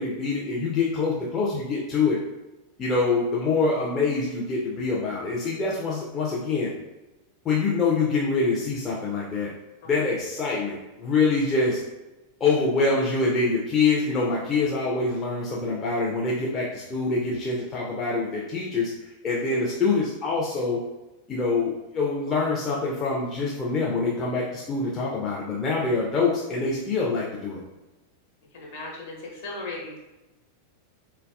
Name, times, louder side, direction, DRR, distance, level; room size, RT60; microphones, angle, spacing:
voice 1, 0.0-2.2 2.8-6.7 7.4-9.5 9.9-11.8 12.4-18.9 19.2-20.8 21.3-27.6, left 4 dB, 25° left, -4 dB, 0.5 m, -25 dB
voice 2, 28.5-30.0, left 2 dB, 50° left, -3 dB, 1.0 m, -37 dB
3.8 x 2.2 x 2.3 m, 1.0 s
figure-of-eight pair, 90°, 0 cm